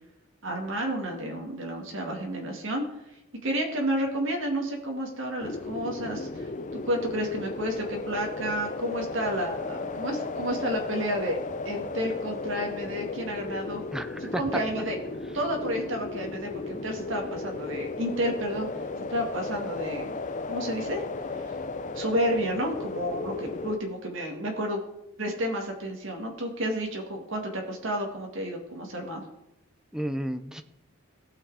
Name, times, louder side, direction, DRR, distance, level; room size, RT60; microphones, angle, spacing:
voice 1, 0.4-6.5 6.9-11.4 11.6-13.8 14.2-15.0 15.3-20.2 20.5-21.0 21.4-21.5 21.9-24.8 25.2-29.2, equal, 60° right, 1 dB, 2.1 m, -31 dB
sound 1, 5.4-23.8, left 3 dB, 35° left, 0.6 m, -35 dB
voice 2, 13.9-14.4 29.9-30.6, equal, 5° right, 8 dB, 0.6 m, -32 dB
17.5 x 6.4 x 4.9 m, 0.86 s
head